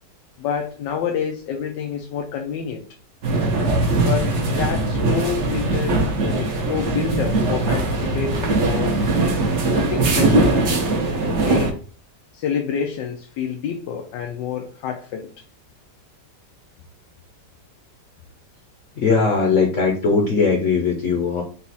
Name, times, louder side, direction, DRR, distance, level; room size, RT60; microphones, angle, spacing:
voice 1, 0.4-2.8 4.0-9.1 9.7-11.8 12.3-15.3, left 7 dB, 90° left, 3 dB, 1.3 m, -28 dB
sound 1, 3.2-11.7, right 2 dB, 50° right, 0.9 m, -20 dB
voice 2, 18.9-21.4, left 4 dB, 55° left, 0 dB, 1.0 m, -19 dB
4.1 x 2.4 x 4.0 m, 0.38 s
omnidirectional pair, 1.9 m